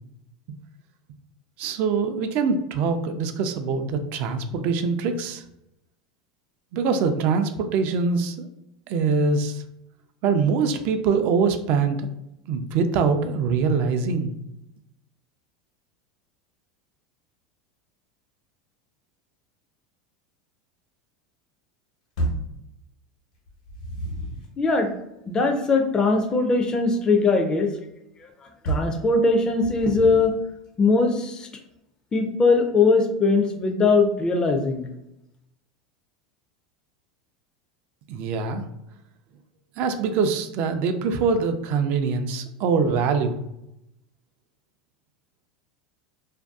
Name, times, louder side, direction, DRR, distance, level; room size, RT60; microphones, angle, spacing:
voice 1, 1.6-5.4 6.7-8.5 8.9-9.6 10.2-12.1 12.5-14.3 38.1-38.6 39.8-43.4, right 5 dB, 55° right, 8 dB, 0.3 m, -23 dB
sound 1, 22.2-22.6 23.5-24.5 28.6-29.0 29.6-30.4, right 2 dB, 80° left, 1.0 m, -30 dB
voice 2, 24.6-24.9 25.3-27.7 28.2-28.3 28.6-30.3 30.8-31.5 32.1-34.9, left 3 dB, 25° left, 4 dB, 0.4 m, -20 dB
2.5 x 2.2 x 2.3 m, 0.85 s
hypercardioid pair, 100°, 3 cm